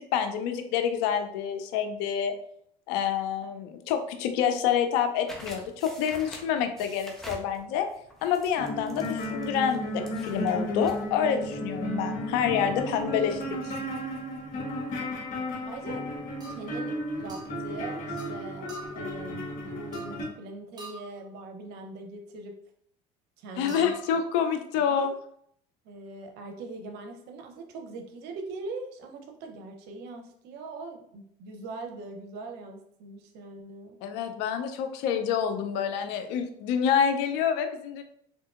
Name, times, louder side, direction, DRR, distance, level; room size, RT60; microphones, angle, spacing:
voice 1, 0.0-2.3 2.9-7.9 8.2-13.7 23.6-25.1 34.0-38.0, left 8 dB, 75° left, 7 dB, 0.5 m, -27 dB
sound 1, 5.3-11.0, right 1 dB, ahead, 0.8 m, -47 dB
sound 2, 8.6-20.3, equal, 50° left, 1.2 m, -34 dB
voice 2, 15.7-16.1 16.5-22.5 23.4-24.0 24.8-25.1 25.8-34.0, right 3 dB, 70° right, 4 dB, 0.7 m, -41 dB
sound 3, 16.4-16.8 17.3-17.5 18.2-18.4 18.7-19.1 19.9-20.3 20.8-21.2 23.7-24.1, right 3 dB, 20° right, 1.1 m, -45 dB
3.4 x 2.6 x 2.4 m, 0.68 s
supercardioid pair, 85°, 18 cm